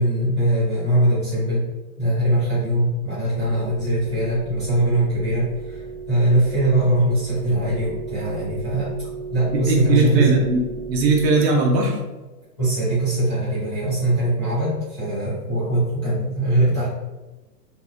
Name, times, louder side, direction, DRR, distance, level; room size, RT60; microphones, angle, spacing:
voice 1, 0.0-1.7 2.0-8.9 9.3-10.4 12.6-16.9, right 1 dB, 20° left, -14 dB, 0.4 m, -21 dB
sound 1, 3.3-11.3, right 5 dB, 5° right, 0.9 m, -35 dB
voice 2, 9.5-12.0, right 3 dB, 80° right, 0 dB, 0.8 m, -19 dB
2.6 x 2.1 x 2.4 m, 1.1 s
hypercardioid pair, 175°, 49 cm